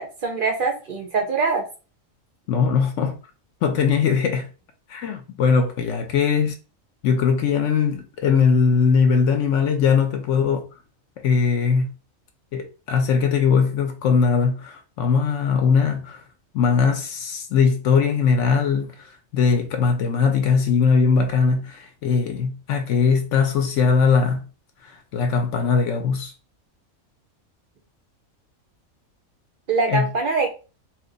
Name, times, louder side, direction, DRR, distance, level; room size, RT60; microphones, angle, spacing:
voice 1, 0.0-1.6 29.7-30.5, right 4 dB, 60° right, 0.5 m, -23 dB
voice 2, 2.5-3.1 3.6-4.5 4.9-6.6 7.0-10.6 11.2-11.9 12.5-16.2 16.5-24.4 24.8-26.3 29.9-30.1, left 5 dB, 70° left, 0.9 m, -20 dB
2.9 x 2.1 x 3.8 m
omnidirectional pair, 1.5 m